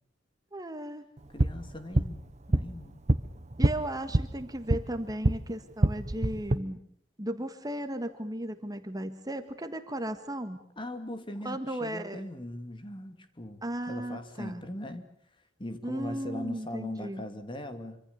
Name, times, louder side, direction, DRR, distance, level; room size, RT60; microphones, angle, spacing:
voice 1, 0.5-1.0 3.6-6.8 7.2-10.6 11.4-12.2 13.6-14.6 15.8-17.3, right 1 dB, 20° right, 8 dB, 1.6 m, -35 dB
sound 1, 1.2-5.4 5.7-6.6, right 1 dB, 40° right, 1.0 m, -27 dB
voice 2, 1.3-3.0 10.8-15.1 15.6-18.0, left 1 dB, 25° left, 8 dB, 2.5 m, -40 dB
26.0 x 25.0 x 6.9 m, 0.62 s
head